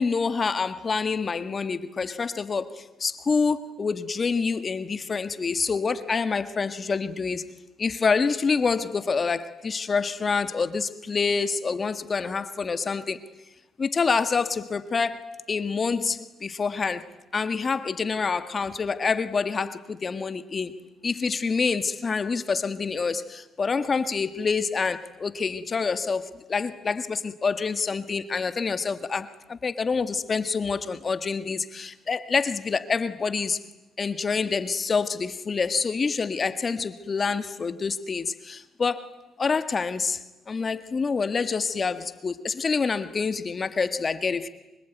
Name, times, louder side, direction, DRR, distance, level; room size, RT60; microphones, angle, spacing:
voice 1, 0.0-7.4 7.8-13.2 13.8-15.2 15.5-17.1 17.3-20.8 21.0-33.6 34.0-39.1 39.4-44.5, left 5 dB, 35° left, 11 dB, 1.7 m, -27 dB
25.5 x 24.5 x 9.4 m, 0.98 s
cardioid pair, 90°, 0 cm